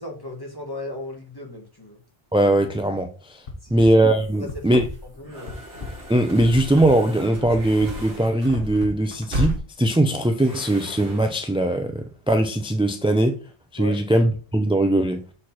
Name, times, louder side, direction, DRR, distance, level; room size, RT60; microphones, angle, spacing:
voice 1, 0.0-2.0 3.6-4.0 4.4-4.7 5.0-5.6 13.8-14.0, left 2 dB, 20° left, 1.5 m, -36 dB
voice 2, 2.3-3.4 3.7-4.9 6.1-13.4 13.7-15.2, right 1 dB, 10° right, 0.3 m, -20 dB
sound 1, 3.5-3.9 4.5-4.9 5.3-5.9 6.5-6.9 7.5-7.9 8.5-8.9, left 3 dB, 60° left, 1.5 m, -34 dB
sound 2, 4.0-8.8 10.3-11.5, equal, 30° right, 3.6 m, -43 dB
sound 3, 4.2-5.2 5.6-7.0 7.3-9.6, equal, 55° right, 2.2 m, -32 dB
6.3 x 4.3 x 4.2 m
omnidirectional pair, 1.1 m